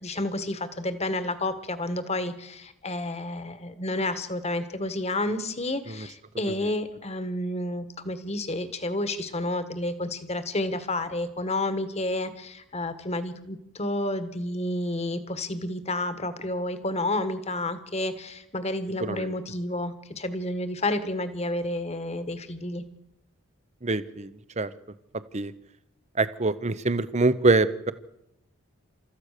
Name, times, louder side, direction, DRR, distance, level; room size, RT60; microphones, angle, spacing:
voice 1, 0.0-22.8, left 1 dB, 30° left, 11 dB, 1.6 m, -30 dB
voice 2, 19.0-19.3 23.8-24.7 25.3-25.5 26.1-27.9, right 3 dB, 30° right, 14 dB, 0.9 m, -25 dB
29.0 x 14.0 x 6.7 m, 0.83 s
head